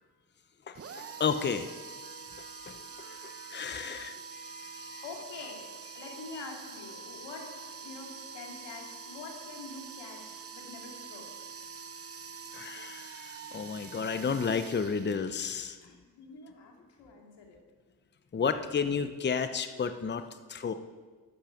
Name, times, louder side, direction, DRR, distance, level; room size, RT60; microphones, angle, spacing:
voice 1, 0.7-5.0 12.5-15.8 18.3-20.2 20.5-20.7, left 6 dB, 25° left, 10 dB, 0.7 m, -33 dB
sound 1, 0.7-15.6, right 6 dB, 35° right, 0.9 m, -46 dB
voice 2, 5.0-11.3 15.8-17.6, left 4 dB, 75° left, 1 dB, 2.6 m, -46 dB
12.0 x 8.6 x 5.1 m, 1.4 s
supercardioid pair, 65°, 43 cm